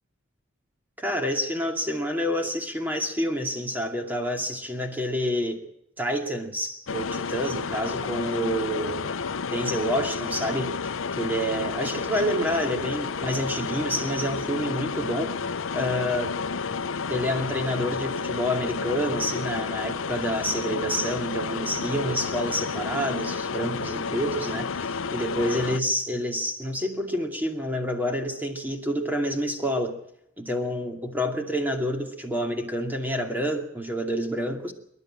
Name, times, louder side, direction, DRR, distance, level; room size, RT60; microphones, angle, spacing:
voice 1, 1.0-5.6 6.0-9.1 9.5-10.9 11.2-15.4 15.7-16.3 17.1-30.0 30.4-34.7, equal, 10° right, 3 dB, 2.4 m, -28 dB
sound 1, 6.9-25.8, left 5 dB, 85° left, 0.7 m, -31 dB
26.5 x 12.0 x 8.8 m, 0.78 s
head